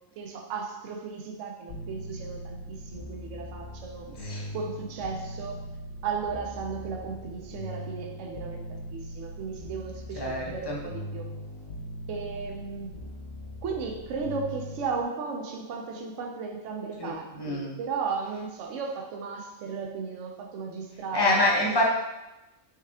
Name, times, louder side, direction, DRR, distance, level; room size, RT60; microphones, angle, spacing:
voice 1, 0.2-4.1 4.5-5.7 6.0-11.3 12.1-13.0 13.6-21.4, right 5 dB, 70° right, 2 dB, 0.9 m, -35 dB
sound 1, 1.7-15.0, equal, 80° left, 1.4 m, -40 dB
voice 2, 4.1-4.5 10.2-10.8 17.0-17.7 21.1-21.9, left 1 dB, 25° left, -3 dB, 0.7 m, -26 dB
4.6 x 3.1 x 3.5 m, 0.99 s
omnidirectional pair, 1.3 m